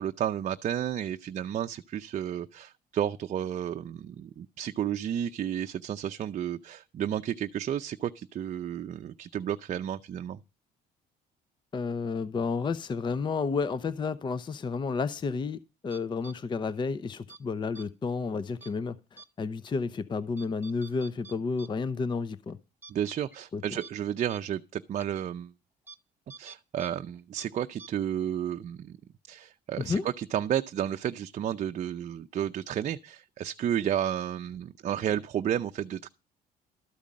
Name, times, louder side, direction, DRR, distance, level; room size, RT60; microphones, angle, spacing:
voice 1, 0.0-10.4 22.9-25.5 26.4-29.0 29.3-36.1, right 10 dB, 45° right, 0.6 m, -32 dB
voice 2, 11.7-22.6 23.5-23.6 29.8-30.0, left 4 dB, 30° left, 0.6 m, -31 dB
sound 1, 15.9-16.4 17.1-17.4 17.8-17.9 18.6-18.8 19.2-19.3 19.7-19.8 20.4-21.7 22.0-22.1 22.5-22.6 22.8-22.9 23.3-23.4 23.8-23.9 24.3-24.4 25.0-25.1 25.9-26.0 26.3-26.9 27.2-27.5 27.8-27.9, right 4 dB, 10° right, 0.7 m, -48 dB
13.0 x 5.1 x 8.5 m
cardioid pair, 110°, 17 cm